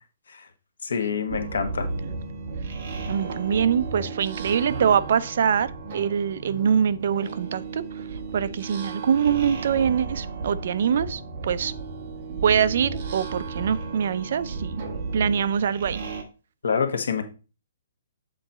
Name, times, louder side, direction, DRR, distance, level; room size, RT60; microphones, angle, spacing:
voice 1, 0.8-1.9 16.6-17.2, left 6 dB, 80° left, 1.3 m, -26 dB
sound 1, 1.3-16.2, right 4 dB, 30° right, 1.0 m, -34 dB
voice 2, 3.1-8.0 8.3-11.7 12.4-14.8 15.1-16.0, right 7 dB, 45° right, 0.4 m, -24 dB
7.5 x 4.0 x 4.1 m
hypercardioid pair, 175°, 0 cm